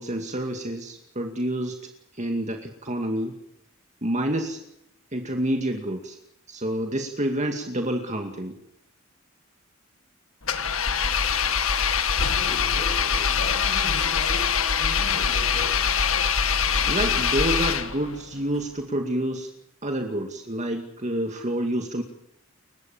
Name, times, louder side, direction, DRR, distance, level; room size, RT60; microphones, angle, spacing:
voice 1, 0.0-1.8 2.1-3.3 4.0-4.6 5.1-6.2 6.5-8.6 16.9-19.5 19.8-22.0, right 1 dB, 35° right, 4 dB, 2.3 m, -28 dB
Engine, 10.4-18.2, left 7 dB, 80° left, 1.8 m, -23 dB
voice 2, 12.3-14.4 14.8-16.0, left 2 dB, 60° left, 0 dB, 7.4 m, -37 dB
29.5 x 16.5 x 7.3 m, 0.77 s
head